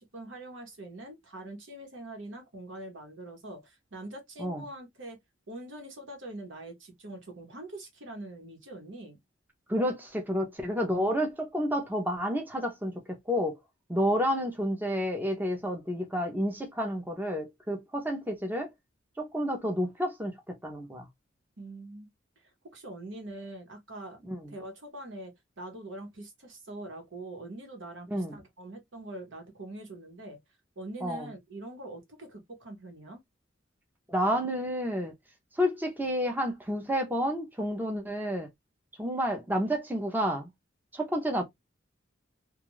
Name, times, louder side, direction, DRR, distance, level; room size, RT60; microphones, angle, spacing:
voice 1, 0.0-5.2 5.5-9.2 21.6-22.1 22.4-24.2 24.5-30.4 30.8-33.2, right 1 dB, 75° right, 1.1 m, -43 dB
voice 2, 9.7-12.9 13.3-13.6 13.9-18.7 19.2-20.4 20.6-21.1 24.2-24.5 28.1-28.4 31.0-31.3 34.1-35.1 35.6-38.5 39.0-40.5 40.9-41.4, equal, 10° right, 0.5 m, -30 dB
2.4 x 2.3 x 3.0 m
head